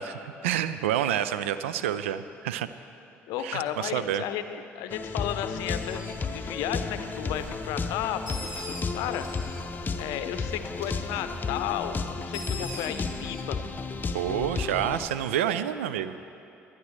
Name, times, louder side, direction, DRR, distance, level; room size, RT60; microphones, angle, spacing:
voice 1, 0.0-2.7 3.4-4.2 14.1-16.2, right 10 dB, 75° right, 13 dB, 0.4 m, -28 dB
voice 2, 3.3-9.5 10.0-13.6, left 10 dB, 60° left, 10 dB, 0.6 m, -34 dB
sound 1, 4.9-15.1, left 4 dB, 25° left, 0.7 m, -33 dB
Bird, 5.6-15.2, left 1 dB, 5° right, 2.3 m, -45 dB
sound 2, 7.0-12.0, right 1 dB, 40° right, 2.5 m, -47 dB
20.0 x 11.0 x 3.2 m, 2.7 s
figure-of-eight pair, 55°, 7 cm